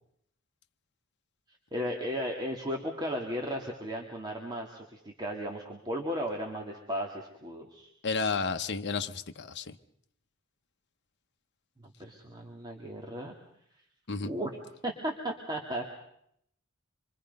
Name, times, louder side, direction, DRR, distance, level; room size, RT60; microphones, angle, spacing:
voice 1, 1.7-7.9 11.8-13.3 14.2-14.6 14.8-15.8, equal, 20° right, 2.2 m, -35 dB
voice 2, 8.0-9.8 14.1-14.3, left 4 dB, 55° left, 1.0 m, -32 dB
27.0 x 24.0 x 5.4 m
head